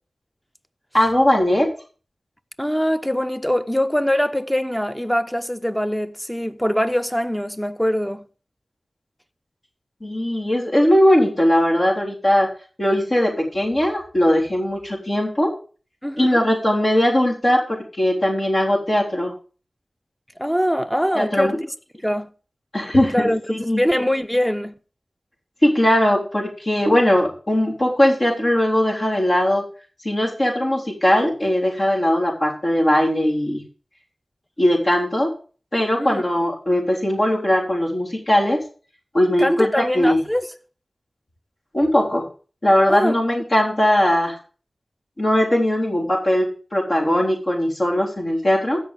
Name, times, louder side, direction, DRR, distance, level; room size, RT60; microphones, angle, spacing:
voice 1, 0.9-1.7 10.0-12.5 12.8-15.5 16.2-19.3 21.2-21.6 22.7-23.8 25.6-29.6 30.0-33.6 34.6-35.3 35.7-38.6 39.1-40.2 41.7-42.3 42.6-44.4 45.2-48.8, left 1 dB, 50° left, 3.6 m, -19 dB
voice 2, 2.6-8.2 16.0-16.4 20.4-21.6 22.0-22.3 23.1-24.7 36.0-36.2 39.4-40.5 42.9-43.2, equal, 5° left, 0.8 m, -23 dB
15.5 x 5.5 x 5.0 m
wide cardioid pair, 50°, 0 cm